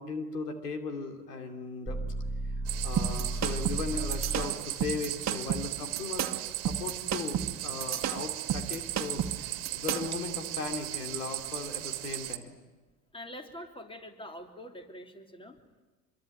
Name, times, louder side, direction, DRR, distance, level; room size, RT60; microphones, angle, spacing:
voice 1, 0.0-2.0 2.4-2.5 2.8-6.3 6.7-12.6, left 4 dB, 80° left, 6 dB, 3.0 m, -37 dB
sound 1, 1.9-4.7, right 2 dB, 5° right, 1.5 m, -34 dB
sound 2, 2.7-12.4, right 16 dB, 65° right, 1.9 m, -37 dB
sound 3, 3.0-10.2, right 9 dB, 35° right, 1.9 m, -32 dB
voice 2, 13.1-15.6, equal, 10° left, 5 dB, 3.2 m, -45 dB
25.0 x 23.0 x 9.0 m, 1.2 s
hypercardioid pair, 75°, 46 cm